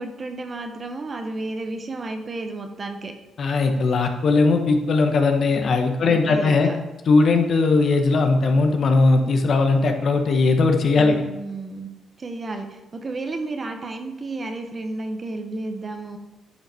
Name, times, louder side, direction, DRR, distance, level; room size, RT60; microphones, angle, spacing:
voice 1, 0.0-3.1 6.0-6.7 10.9-11.9 12.2-16.2, right 2 dB, 35° right, 6 dB, 1.0 m, -32 dB
voice 2, 3.4-6.7 7.1-11.2, left 3 dB, 55° left, 5 dB, 1.1 m, -19 dB
9.8 x 5.7 x 4.3 m, 1.1 s
cardioid pair, 90°, 0 cm